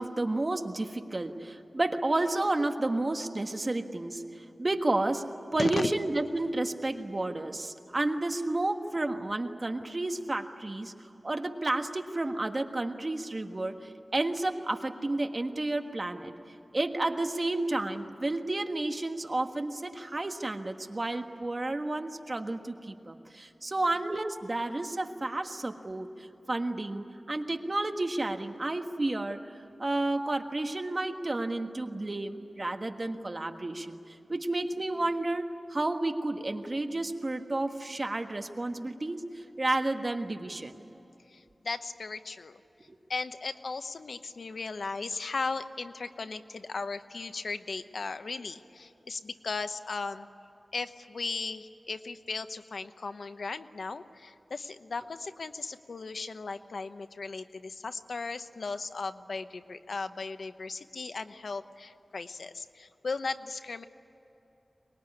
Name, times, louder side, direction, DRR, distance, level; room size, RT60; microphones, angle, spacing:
voice 1, 0.0-10.9 11.2-16.3 16.7-29.4 29.8-40.8 42.9-43.0, right 2 dB, 35° right, 5 dB, 1.5 m, -31 dB
voice 2, 41.3-42.6 43.1-50.3 50.7-63.8, left 4 dB, 80° left, 10 dB, 0.9 m, -37 dB
24.0 x 21.0 x 9.8 m, 3.0 s
wide cardioid pair, 95°, 0 cm